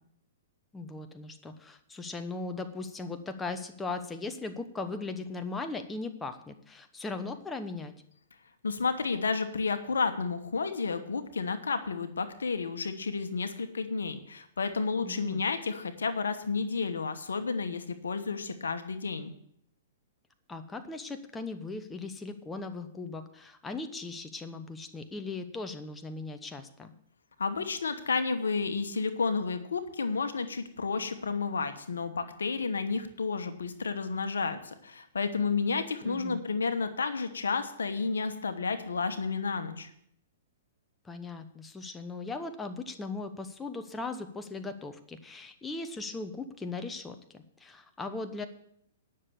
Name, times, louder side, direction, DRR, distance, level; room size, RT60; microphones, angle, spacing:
voice 1, 0.7-7.9 15.0-15.4 20.5-26.9 36.0-36.4 41.0-48.5, left 3 dB, 10° left, 7 dB, 1.0 m, -38 dB
voice 2, 8.6-19.3 27.4-39.9, left 4 dB, 85° left, 9 dB, 1.1 m, -31 dB
9.8 x 6.7 x 8.4 m, 0.72 s
hypercardioid pair, 120°, 0 cm